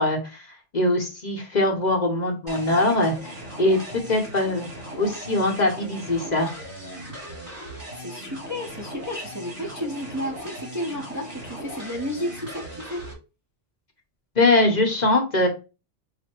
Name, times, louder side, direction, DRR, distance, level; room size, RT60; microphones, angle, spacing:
voice 1, 0.0-4.7 5.0-6.5 14.4-15.5, left 2 dB, 40° left, 1 dB, 0.9 m, -22 dB
sound 1, 2.5-13.1, equal, 45° right, 2.2 m, -38 dB
voice 2, 7.9-13.0, equal, 20° right, 0 dB, 0.6 m, -32 dB
5.0 x 2.1 x 4.3 m, 0.30 s
omnidirectional pair, 1.2 m